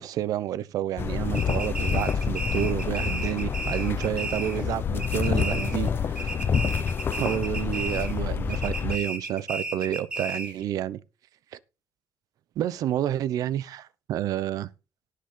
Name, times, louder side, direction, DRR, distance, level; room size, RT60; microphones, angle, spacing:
voice 1, 0.0-6.3 7.2-11.0 11.5-11.6 12.6-14.7, right 12 dB, 55° right, 0.8 m, -29 dB
sound 1, 1.0-9.0, left 7 dB, 30° left, 0.8 m, -28 dB
sound 2, 1.3-4.7 5.0-5.9 6.2-8.2 8.5-10.6, right 2 dB, 15° right, 1.9 m, -34 dB
sound 3, 5.3-7.2, right 12 dB, 75° right, 2.0 m, -51 dB
18.5 x 6.6 x 3.9 m
cardioid pair, 175°, 7 cm